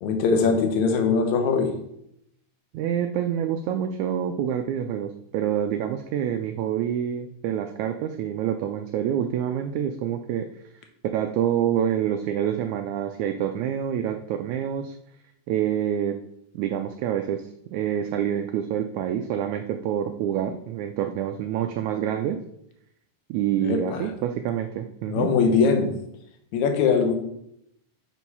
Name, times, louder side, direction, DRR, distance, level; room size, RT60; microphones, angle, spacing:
voice 1, 0.0-1.7 23.6-24.1 25.1-25.9 26.5-27.1, left 5 dB, 70° left, 5 dB, 2.0 m, -21 dB
voice 2, 2.7-10.5 11.1-15.0 15.5-16.2 16.5-22.4 23.3-25.3, right 10 dB, 90° right, 6 dB, 1.6 m, -27 dB
6.8 x 4.6 x 5.4 m, 0.76 s
omnidirectional pair, 3.9 m